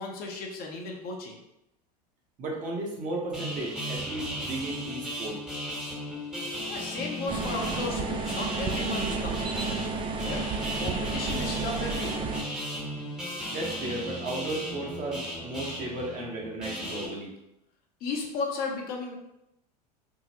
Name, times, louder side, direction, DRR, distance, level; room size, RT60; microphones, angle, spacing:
voice 1, 0.0-1.4 6.7-12.4 18.0-19.2, left 3 dB, 45° left, 0 dB, 0.7 m, -35 dB
voice 2, 2.4-5.4 13.5-17.3, right 2 dB, 40° right, -2 dB, 1.0 m, -34 dB
sound 1, 3.3-17.1, equal, 5° right, 0.9 m, -36 dB
sound 2, 7.3-12.4, right 4 dB, 25° right, 0.3 m, -32 dB
3.6 x 2.0 x 2.9 m, 0.86 s
hypercardioid pair, 85°, 21 cm